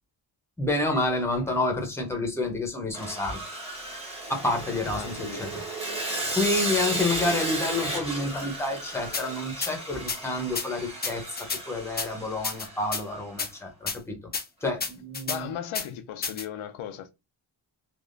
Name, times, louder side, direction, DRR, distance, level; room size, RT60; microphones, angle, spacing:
voice 1, 0.6-3.4 4.3-5.6 6.3-14.2 14.6-15.5, left 2 dB, 5° left, 0.8 m, -29 dB
Sawing, 2.9-13.2, right 1 dB, 15° right, 1.1 m, -34 dB
voice 2, 4.9-5.4 15.3-17.1, left 10 dB, 90° left, 0.7 m, -36 dB
sound 1, 9.1-9.2 9.6-9.7 10.1-10.2 10.5-10.7 11.0-11.6 12.0-12.1 12.4-13.0 13.4-13.5 13.9-14.0 14.3-14.4 14.8-15.4 15.7-15.9 16.2-16.4, left 5 dB, 20° left, 0.4 m, -30 dB
3.5 x 2.9 x 2.5 m
wide cardioid pair, 155°, 47 cm